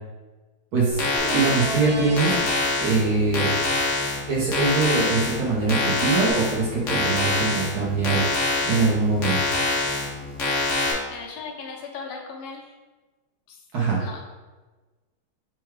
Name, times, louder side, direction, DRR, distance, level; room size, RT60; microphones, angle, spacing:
voice 1, 0.7-1.0 1.3-2.3 2.8-3.5 4.3-8.2 8.7-9.4 13.7-14.0, right 4 dB, 55° right, -5 dB, 1.2 m, -23 dB
sound 1, 0.9-10.9, left 2 dB, 60° left, 0.7 m, -25 dB
sound 2, 1.2-2.4 6.3-6.4, right 1 dB, 80° right, 1.9 m, -32 dB
voice 2, 11.1-12.7 13.5-13.6 14.0-14.2, left 5 dB, 80° left, 0 dB, 1.6 m, -37 dB
4.6 x 2.3 x 4.7 m, 1.2 s
omnidirectional pair, 2.3 m